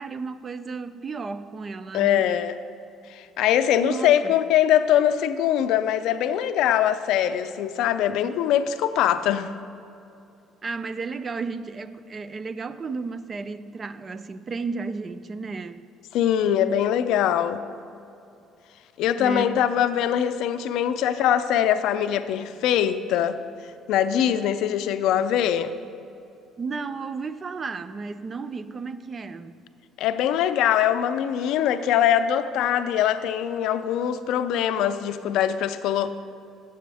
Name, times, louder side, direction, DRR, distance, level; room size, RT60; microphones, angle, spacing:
voice 1, 0.0-2.3 3.8-4.3 10.6-15.9 19.2-19.7 26.6-29.7, right 4 dB, 30° right, 0.4 m, -33 dB
voice 2, 1.9-2.5 3.1-9.5 16.1-17.6 19.0-23.4 23.9-25.7 30.0-36.2, left 10 dB, 75° left, 0.4 m, -22 dB
9.8 x 7.7 x 3.4 m
cardioid pair, 110°, 0 cm